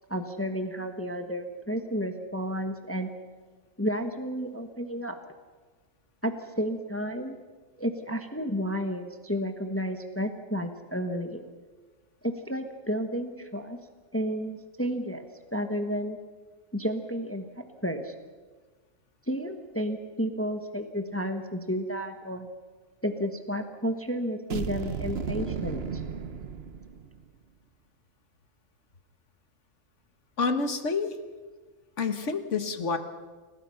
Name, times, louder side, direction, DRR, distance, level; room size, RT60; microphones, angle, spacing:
voice 1, 0.1-3.1 3.8-5.2 6.2-7.4 7.8-11.4 12.2-13.8 14.1-15.3 15.5-16.2 16.7-18.1 19.3-22.5 23.0-26.0, equal, 10° left, 6 dB, 1.3 m, -32 dB
sound 1, 24.5-27.3, right 6 dB, 50° right, 1.2 m, -34 dB
voice 2, 30.4-31.2 32.0-33.0, left 4 dB, 65° left, 8 dB, 1.8 m, -28 dB
29.5 x 18.0 x 5.8 m, 1.4 s
omnidirectional pair, 1.4 m